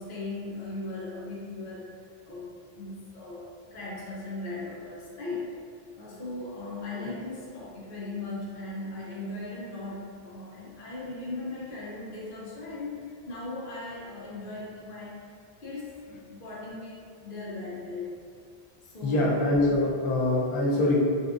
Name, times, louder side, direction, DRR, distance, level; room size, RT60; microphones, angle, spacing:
voice 1, 0.0-5.5 6.0-15.2 15.6-18.2 18.8-19.2, left 2 dB, 60° left, -7 dB, 0.9 m, -38 dB
voice 2, 19.0-21.0, left 2 dB, 40° left, -5 dB, 0.5 m, -24 dB
3.6 x 2.6 x 2.4 m, 2.2 s
omnidirectional pair, 1.0 m